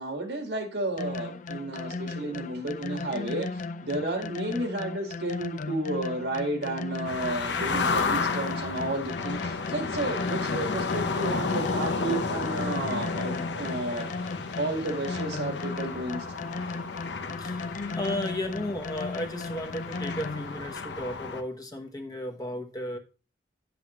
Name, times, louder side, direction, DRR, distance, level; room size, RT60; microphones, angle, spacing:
voice 1, 0.0-14.1 14.6-16.3 17.9-18.0, right 2 dB, 70° right, 1.8 m, -32 dB
sound 1, 1.0-20.6, left 3 dB, 45° left, 0.5 m, -36 dB
sound 2, 7.1-21.4, left 4 dB, 80° left, 0.9 m, -32 dB
voice 2, 17.9-23.0, left 1 dB, 20° left, 1.1 m, -34 dB
9.6 x 7.9 x 3.1 m
head